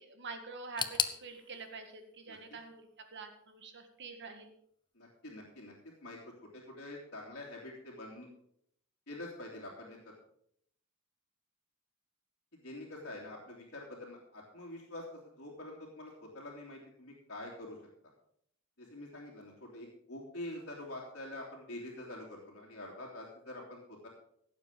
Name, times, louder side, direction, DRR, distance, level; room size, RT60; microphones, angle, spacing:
voice 1, 0.0-4.5, right 4 dB, 55° right, 6 dB, 1.8 m, -46 dB
sound 1, 0.8-3.6 3.9-4.7 5.0-5.1 6.0-6.1, left 6 dB, 20° left, 0.7 m, -39 dB
voice 2, 4.9-6.2 6.5-8.3 9.1-10.0 12.5-15.1 15.4-17.8 18.8-24.1, left 1 dB, 55° left, -5 dB, 3.0 m, -46 dB
16.5 x 7.5 x 5.4 m, 0.69 s
head